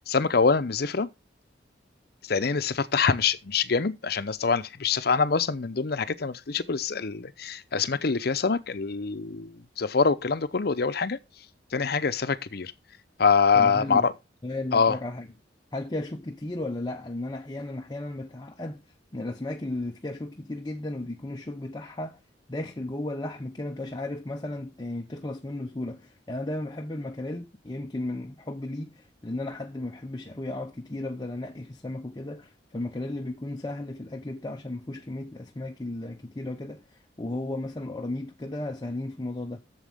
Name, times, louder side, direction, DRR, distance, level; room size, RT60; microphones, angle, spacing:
voice 1, 0.1-1.1 2.2-11.2 11.7-12.7 13.2-14.1 14.7-15.0, left 5 dB, 60° left, 0.7 m, -25 dB
voice 2, 13.5-14.1 14.4-15.3 15.7-18.8 19.1-22.2 22.5-39.6, left 2 dB, 25° left, 0.7 m, -34 dB
11.5 x 7.2 x 3.5 m
head